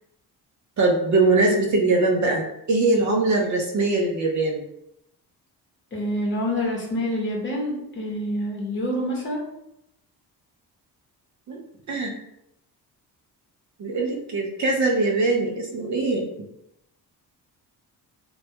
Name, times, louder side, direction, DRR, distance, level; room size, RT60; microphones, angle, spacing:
voice 1, 0.8-4.6 11.5-11.6 11.9-12.1 13.8-16.3, right 3 dB, 50° right, 0 dB, 0.5 m, -22 dB
voice 2, 5.9-9.4, equal, 30° left, -2 dB, 0.8 m, -27 dB
2.2 x 2.0 x 2.7 m, 0.81 s
cardioid pair, 100°, 38 cm